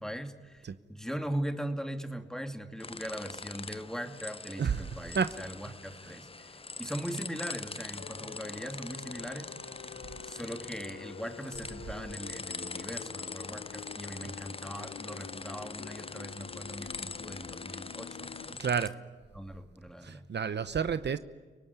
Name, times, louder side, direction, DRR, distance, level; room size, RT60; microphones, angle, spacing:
voice 1, 0.0-9.5 10.2-18.6 19.3-20.2, equal, 5° left, 6 dB, 2.6 m, -40 dB
sound 1, 2.8-18.9, left 3 dB, 30° left, 0.9 m, -43 dB
voice 2, 4.5-5.7 6.0-6.1 14.2-14.3 18.4-19.0 20.0-21.2, right 6 dB, 65° right, 13 dB, 0.9 m, -32 dB
sound 2, 7.9-18.5, left 9 dB, 80° left, 0.8 m, -47 dB
30.0 x 18.5 x 9.7 m, 1.5 s
cardioid pair, 50°, 20 cm